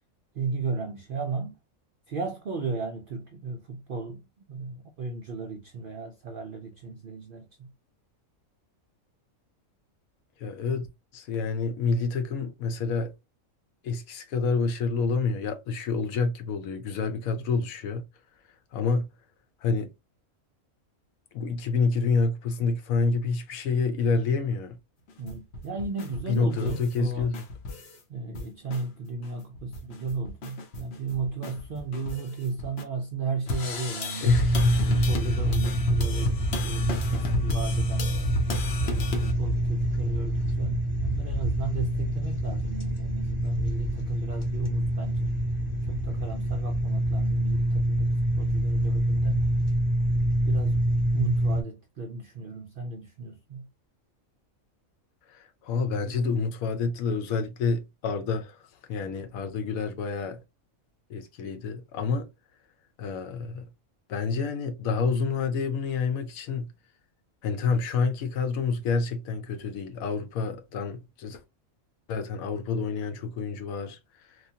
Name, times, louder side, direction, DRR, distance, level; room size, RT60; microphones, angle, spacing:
voice 1, 0.3-1.6 2.1-7.7 25.2-27.3 28.1-34.3 34.9-38.1 38.8-45.3 45.8-49.5 50.4-50.8 51.1-53.7, right 4 dB, 70° right, 0.5 m, -35 dB
voice 2, 10.4-10.9 11.1-13.1 13.8-18.0 18.7-19.1 19.6-19.9 21.3-24.8 26.3-27.4 34.2-34.8 55.3-58.6 58.9-60.4 61.1-62.3 63.0-63.7 64.1-66.7 67.4-71.4 72.1-74.0, left 4 dB, 85° left, 1.1 m, -28 dB
sound 1, 25.1-28.0 28.4-28.8 29.2-29.3 29.6-32.8 33.5-39.3, left 2 dB, 55° left, 0.8 m, -34 dB
sound 2, 34.2-51.6, right 1 dB, 30° left, 0.7 m, -26 dB
3.0 x 2.3 x 2.7 m
omnidirectional pair, 1.4 m